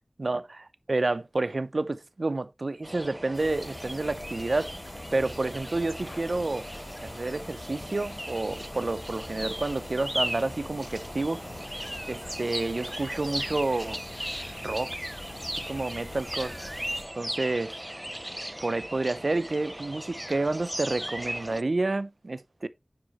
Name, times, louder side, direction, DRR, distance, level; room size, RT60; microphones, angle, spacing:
voice 1, 0.2-4.7 5.1-6.7 7.0-11.4 12.1-14.0 14.6-15.0 15.7-16.5 17.2-17.8 18.6-22.7, right 2 dB, 75° right, 0.5 m, -29 dB
sound 1, 2.8-21.6, right 1 dB, 15° right, 0.4 m, -37 dB
sound 2, 3.3-17.0, left 2 dB, 85° left, 1.4 m, -44 dB
9.7 x 5.0 x 3.0 m
wide cardioid pair, 50°, 0 cm